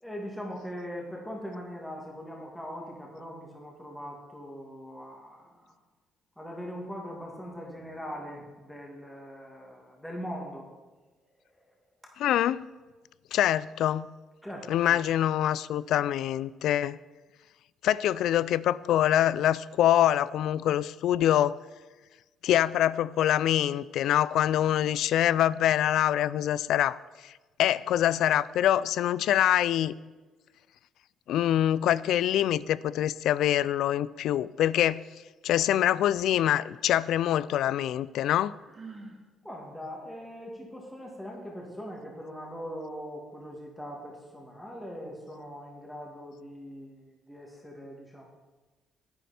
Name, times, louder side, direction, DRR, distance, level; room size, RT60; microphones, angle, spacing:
voice 1, 0.0-5.7 6.4-10.7 14.4-15.0 39.4-48.2, equal, 5° left, -2 dB, 2.2 m, -41 dB
voice 2, 12.2-12.7 13.3-14.1 14.7-17.0 17.8-21.6 22.4-27.3 27.6-29.9 31.3-35.0 35.4-38.6, left 11 dB, 75° left, 19 dB, 0.3 m, -25 dB
Sigh, 38.6-39.2, right 3 dB, 35° right, 2.1 m, -45 dB
10.0 x 9.3 x 4.3 m, 1.3 s
cardioid pair, 90°, 0 cm